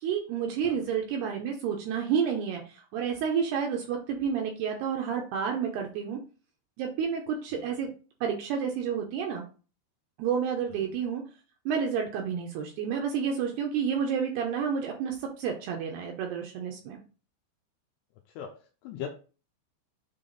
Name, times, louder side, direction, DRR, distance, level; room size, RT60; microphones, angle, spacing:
voice 1, 0.0-6.2 6.8-7.9 8.2-9.4 10.2-11.2 11.7-17.0, right 7 dB, 75° right, 1 dB, 2.4 m, -30 dB
voice 2, 18.4-19.1, left 9 dB, 80° left, 4 dB, 2.5 m, -40 dB
7.5 x 3.5 x 3.9 m, 0.36 s
omnidirectional pair, 5.5 m